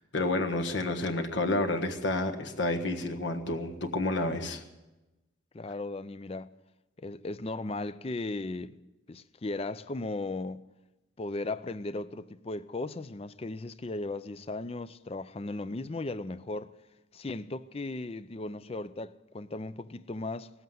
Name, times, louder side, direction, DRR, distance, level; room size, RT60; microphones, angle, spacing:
voice 1, 0.1-4.6, left 2 dB, 65° left, 1.5 m, -30 dB
voice 2, 5.5-6.5 7.0-8.8 9.1-10.7 11.2-16.7 17.1-20.5, left 2 dB, 30° left, 0.5 m, -36 dB
18.5 x 8.0 x 9.3 m
head